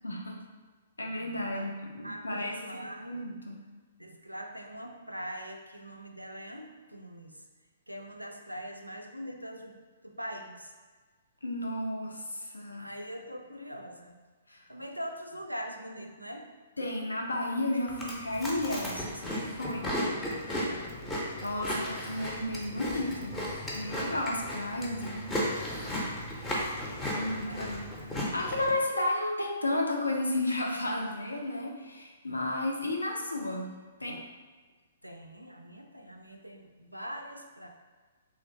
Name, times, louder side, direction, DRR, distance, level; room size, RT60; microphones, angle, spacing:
voice 1, 0.0-0.4 1.0-3.6 11.4-12.9 14.5-14.6 16.8-20.0 21.4-23.4 23.7-25.3 27.1-33.7 34.0-34.2, left 1 dB, 80° left, 0 dB, 0.5 m, -33 dB
voice 2, 2.0-3.2 4.0-7.4 7.9-10.7 12.8-14.2 14.7-16.5 20.4-21.4 27.3-27.7 35.0-37.7, equal, 90° right, 4 dB, 0.3 m, -42 dB
Chewing mastication, 17.9-28.7, equal, 10° left, 0.6 m, -35 dB
3.0 x 2.4 x 2.8 m, 1.4 s
figure-of-eight pair, 120°, 0 cm